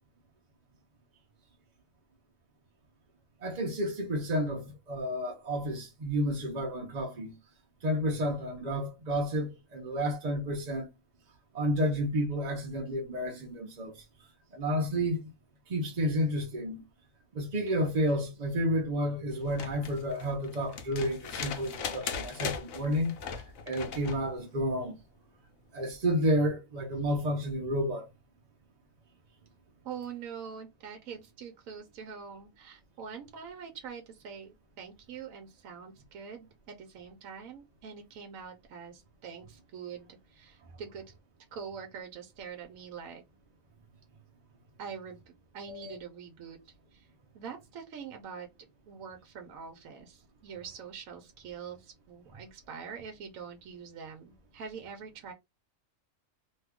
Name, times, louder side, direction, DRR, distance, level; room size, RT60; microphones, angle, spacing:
voice 1, 3.4-7.3 7.8-10.9 11.5-14.0 14.5-15.2 15.7-16.8 17.3-23.1 23.7-25.0 25.7-28.1 45.7-45.9, equal, 45° right, 0.5 m, -31 dB
sound 1, 19.4-24.3 25.9-26.0, left 6 dB, 65° left, 1.0 m, -39 dB
voice 2, 29.8-41.0 41.5-43.2 44.8-47.1 47.3-48.5 48.9-55.3, right 6 dB, 70° right, 1.0 m, -44 dB
2.9 x 2.3 x 3.5 m
omnidirectional pair, 1.6 m